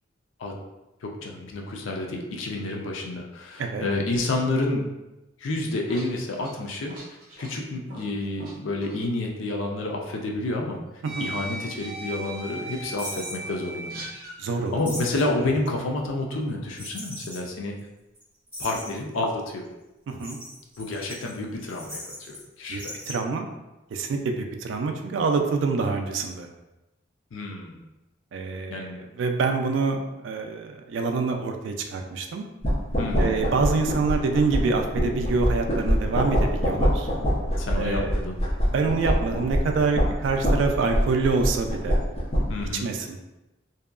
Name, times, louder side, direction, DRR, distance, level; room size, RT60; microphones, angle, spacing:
voice 1, 1.0-4.9 5.4-6.9 7.4-10.8 11.2-14.1 14.7-17.7 18.6-19.6 20.8-22.9 27.3-27.8 28.7-29.0 33.0-33.3 37.6-38.3 42.5-42.8, left 2 dB, 80° left, 1 dB, 0.4 m, -29 dB
sound 1, 5.7-8.5 8.8-9.0 10.1-10.2 11.0-14.4, right 2 dB, 50° right, 0.7 m, -38 dB
sound 2, 13.0-13.4 14.7-15.4 16.8-17.4 17.8-17.9 18.1-18.2 18.5-19.2 20.1-22.4 22.7-23.1, left 1 dB, 10° right, 1.1 m, -39 dB
voice 2, 14.4-14.8 20.1-20.4 22.7-23.5 23.9-26.5 28.3-32.4 33.2-37.1 37.7-38.2 38.6-42.0 42.8-43.2, right 4 dB, 70° right, 5 dB, 0.3 m, -26 dB
sound 3, 32.6-42.7, equal, 30° left, 0.6 m, -25 dB
2.7 x 2.2 x 2.3 m, 0.99 s
head